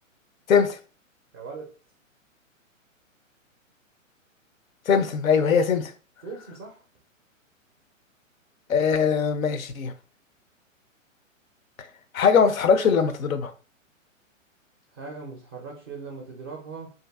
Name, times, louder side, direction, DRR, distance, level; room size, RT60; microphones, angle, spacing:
voice 1, 0.5-0.8 4.9-5.9 8.7-9.9 11.8-11.9 12.1-13.5, left 6 dB, 85° left, 0.5 m, -21 dB
voice 2, 1.3-1.7 6.2-6.8 14.9-16.9, right 4 dB, 20° right, 0.3 m, -39 dB
2.6 x 2.5 x 2.3 m
figure-of-eight pair, 120°, 40 cm